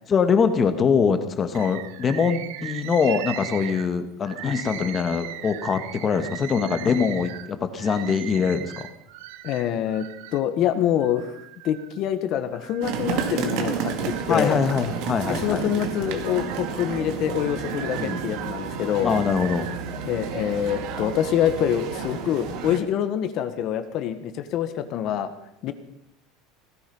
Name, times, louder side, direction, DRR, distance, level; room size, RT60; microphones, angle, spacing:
voice 1, 0.1-8.9 14.3-15.6 18.0-18.3 19.0-19.7, left 6 dB, 20° left, 9 dB, 1.5 m, -23 dB
Bird, 1.5-10.5 11.0-12.0 12.5-13.5 14.0-15.3 15.8-20.1 20.8-21.3, right 13 dB, 80° right, 1.2 m, -39 dB
voice 2, 9.4-10.1 10.3-11.3 11.6-14.6 15.3-19.1 20.1-25.3 25.6-25.7, left 10 dB, 40° left, 10 dB, 1.5 m, -25 dB
sound 1, 12.8-22.8, right 6 dB, 55° right, 2.4 m, -31 dB
17.5 x 15.0 x 5.5 m, 0.80 s
cardioid pair, 160°, 0 cm